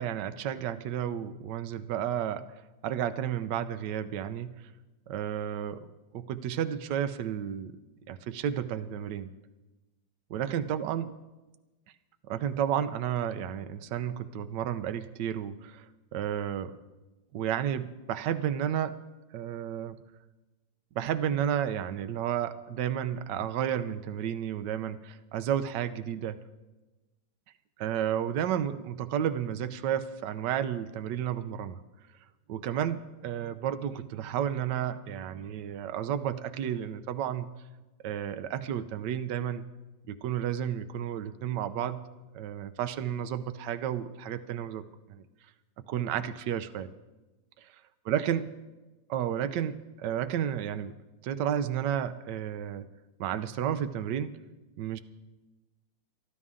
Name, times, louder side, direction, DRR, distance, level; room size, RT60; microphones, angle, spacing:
voice 1, 0.0-2.4 2.8-4.6 5.1-7.8 8.1-9.3 10.3-11.2 12.3-15.9 16.1-16.7 17.3-19.0 19.3-20.0 20.9-26.4 27.8-31.8 32.5-37.5 38.0-39.7 40.1-42.0 42.3-45.2 45.9-46.9 48.1-48.5 49.1-50.9 51.2-52.9 53.2-54.4 54.8-55.0, right 9 dB, 70° right, 10 dB, 1.3 m, -32 dB
23.5 x 12.5 x 3.8 m, 1.1 s
omnidirectional pair, 2.0 m